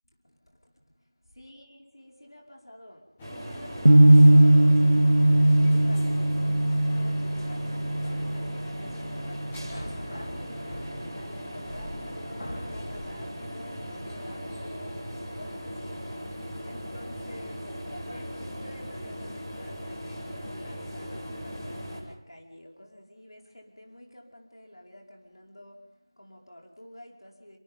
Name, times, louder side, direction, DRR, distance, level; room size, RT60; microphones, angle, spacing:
voice 1, 0.2-4.7 5.1-16.3 16.6-17.7 18.0-27.6, equal, 80° left, 0 dB, 5.2 m, -49 dB
sound 1, 3.2-22.0, equal, 5° left, 1.4 m, -38 dB
sound 2, 3.8-9.9, right 1 dB, 60° right, 0.9 m, -20 dB
sound 3, 9.7-11.2 11.9-12.0 12.4-13.2, left 1 dB, 50° left, 3.1 m, -41 dB
27.5 x 26.5 x 3.8 m, 0.80 s
figure-of-eight pair, 180°, 2 cm